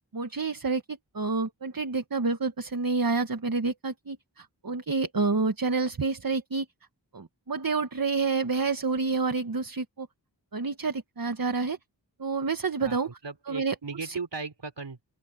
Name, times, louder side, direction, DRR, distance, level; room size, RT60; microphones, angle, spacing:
voice 1, 0.0-6.7 7.1-10.1 10.5-11.8 12.2-13.1 13.5-13.7 14.0-14.2, right 4 dB, 50° right, 1.5 m, -28 dB
voice 2, 12.8-15.0, right 4 dB, 75° right, 3.9 m, -37 dB
open air
wide cardioid pair, 45°, 43 cm